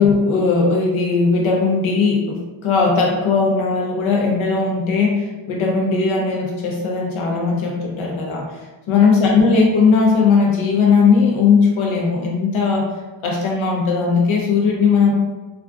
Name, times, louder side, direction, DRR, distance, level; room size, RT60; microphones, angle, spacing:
voice 1, 0.0-12.9 13.2-15.1, left 4 dB, 80° left, -1 dB, 0.6 m, -18 dB
3.5 x 2.3 x 2.3 m, 1.2 s
wide cardioid pair, 150°, 47 cm